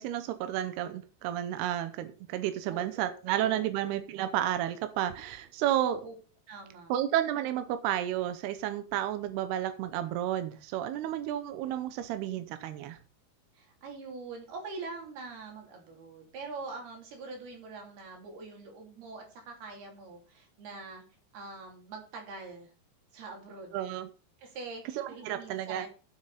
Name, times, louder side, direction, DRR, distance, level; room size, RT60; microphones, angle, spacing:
voice 1, 0.0-6.0 6.9-13.0 23.7-24.1 25.0-25.9, right 12 dB, 75° right, 10 dB, 2.4 m, -31 dB
voice 2, 2.7-3.7 5.8-6.2 6.5-7.0 13.5-21.0 21.3-22.7 23.1-23.8 24.4-25.9, right 3 dB, 55° right, 2 dB, 4.8 m, -43 dB
15.5 x 7.8 x 4.1 m, 0.37 s
omnidirectional pair, 5.6 m